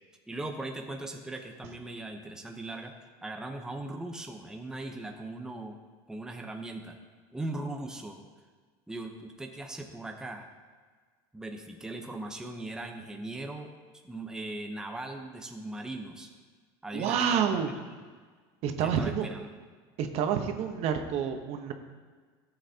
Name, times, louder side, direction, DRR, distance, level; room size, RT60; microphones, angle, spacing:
voice 1, 0.3-5.8 6.1-7.0 7.3-8.2 8.9-10.5 11.3-13.7 14.0-16.3 16.8-17.5 18.8-19.5, right 2 dB, 5° right, 2 dB, 0.8 m, -39 dB
voice 2, 16.9-17.7 18.6-19.3 20.0-21.7, right 8 dB, 55° right, 6 dB, 1.0 m, -28 dB
13.5 x 7.8 x 2.9 m, 1.5 s
supercardioid pair, 110°, 12 cm